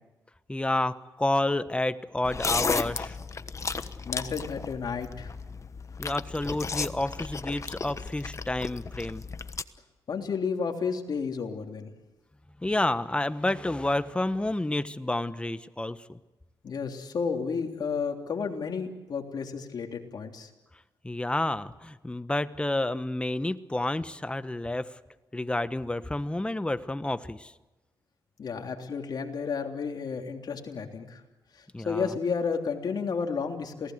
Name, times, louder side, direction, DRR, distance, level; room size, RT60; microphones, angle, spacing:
voice 1, 0.5-3.2 6.0-9.2 12.6-16.2 21.0-25.0 25.3-27.5 31.7-32.1, left 1 dB, 15° left, 12 dB, 1.2 m, -30 dB
sound 1, 2.2-9.6, left 4 dB, 40° left, 1.2 m, -34 dB
voice 2, 4.0-5.3 10.1-11.9 16.6-20.5 28.4-31.2 31.8-33.9, left 5 dB, 60° left, 3 dB, 3.3 m, -32 dB
28.0 x 19.0 x 8.1 m, 1.1 s
cardioid pair, 70°, 8 cm